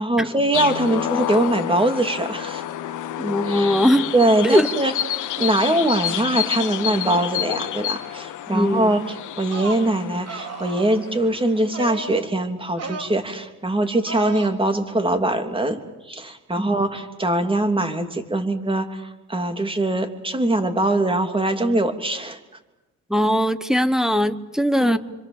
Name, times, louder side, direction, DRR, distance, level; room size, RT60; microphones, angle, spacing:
voice 1, 0.0-2.6 3.4-3.7 4.1-4.9 5.4-22.4 24.8-25.0, right 1 dB, 15° right, 6 dB, 3.2 m, -22 dB
sound 1, 0.5-11.7, left 11 dB, 85° left, 1.6 m, -29 dB
voice 2, 3.2-4.1 4.4-4.7 8.5-8.9 16.6-16.7 23.1-25.0, equal, ahead, 9 dB, 1.2 m, -20 dB
sound 2, 9.4-9.9 10.3-11.0 11.7-12.3 12.7-13.2 14.1-14.5, right 2 dB, 55° right, 3.3 m, -33 dB
27.0 x 25.5 x 7.5 m, 1.1 s
cardioid pair, 90°, 30 cm